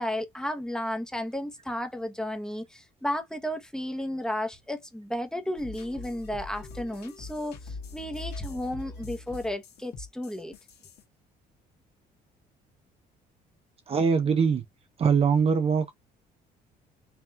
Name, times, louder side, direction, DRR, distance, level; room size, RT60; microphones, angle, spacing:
voice 1, 0.0-10.5, left 1 dB, 5° left, 0.9 m, -33 dB
sound 1, 5.6-11.0, left 3 dB, 70° left, 1.5 m, -42 dB
voice 2, 13.9-14.6 15.0-15.9, right 6 dB, 35° right, 0.6 m, -22 dB
5.5 x 2.9 x 2.4 m
cardioid pair, 110°, 17 cm